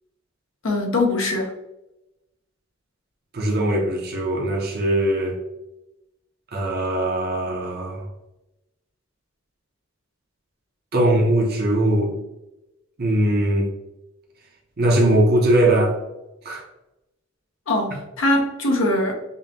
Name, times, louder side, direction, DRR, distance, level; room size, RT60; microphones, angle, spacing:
voice 1, 0.6-1.5 17.7-19.1, left 2 dB, 70° left, 1 dB, 0.8 m, -22 dB
voice 2, 3.3-5.4 6.5-8.0 10.9-12.1 13.0-13.7 14.8-16.0 16.4-16.6, right 1 dB, 50° right, -1 dB, 0.8 m, -20 dB
5.4 x 2.1 x 2.7 m, 0.94 s
head